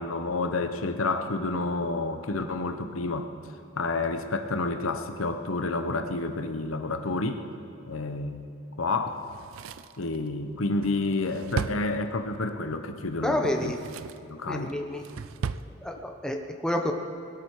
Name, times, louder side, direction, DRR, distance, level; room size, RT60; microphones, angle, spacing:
voice 1, 0.0-3.3 3.8-7.4 7.9-8.5 8.8-9.2 10.0-13.7 14.2-14.7, left 3 dB, 80° left, 8 dB, 1.0 m, -29 dB
Drawer open or close, 9.2-12.5 13.4-14.3 14.7-15.7 16.0-16.1, right 5 dB, 75° right, 0.4 m, -37 dB
voice 2, 13.2-13.8 14.4-15.2 15.7-16.9, left 1 dB, 5° left, 2 dB, 1.0 m, -29 dB
20.5 x 12.5 x 4.8 m, 2.7 s
head